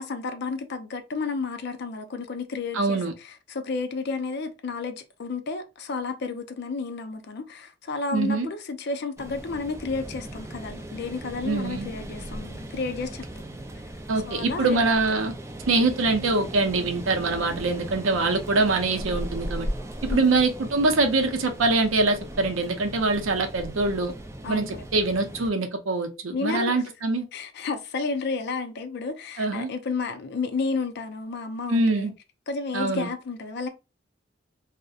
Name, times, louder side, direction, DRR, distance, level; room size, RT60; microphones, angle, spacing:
voice 1, 0.0-13.3 14.2-15.0 20.1-20.4 24.4-24.8 26.3-26.7 27.3-32.1 32.5-33.7, left 4 dB, 55° left, 0.4 m, -32 dB
voice 2, 2.7-3.1 8.1-8.5 11.5-11.9 14.1-15.3 15.7-19.7 20.0-24.1 24.5-27.3 29.4-29.7 31.7-32.1 32.7-33.1, right 3 dB, 80° right, 0.5 m, -24 dB
sound 1, 9.2-25.5, right 1 dB, 15° right, 0.3 m, -37 dB
2.6 x 2.1 x 2.3 m
head